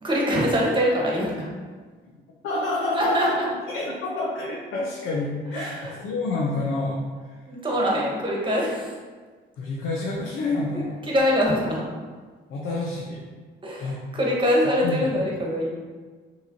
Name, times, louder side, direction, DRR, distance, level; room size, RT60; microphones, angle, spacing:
voice 1, 0.0-1.5 2.9-3.5 5.5-6.0 7.5-9.0 10.7-11.8 13.6-15.7, equal, 25° right, -3 dB, 1.2 m, -24 dB
voice 2, 2.4-3.4 3.7-7.0 7.3-7.4 9.6-11.0 12.5-13.2 13.8-14.0 14.8-15.3, left 2 dB, 80° left, -3 dB, 0.7 m, -28 dB
5.4 x 3.0 x 2.7 m, 1.5 s
cardioid pair, 90°, 20 cm